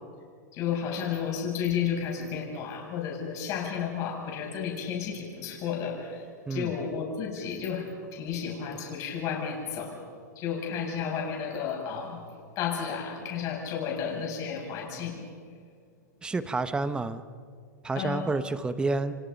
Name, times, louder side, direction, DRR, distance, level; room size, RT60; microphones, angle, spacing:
voice 1, 0.5-6.2 6.5-10.0 10.4-12.2 12.6-15.2 18.0-18.3, left 7 dB, 35° left, 0 dB, 7.1 m, -32 dB
voice 2, 6.5-6.8 16.2-17.2 17.8-19.2, right 3 dB, 10° right, 12 dB, 1.0 m, -29 dB
29.5 x 25.0 x 5.3 m, 2.1 s
hypercardioid pair, 140°, 10 cm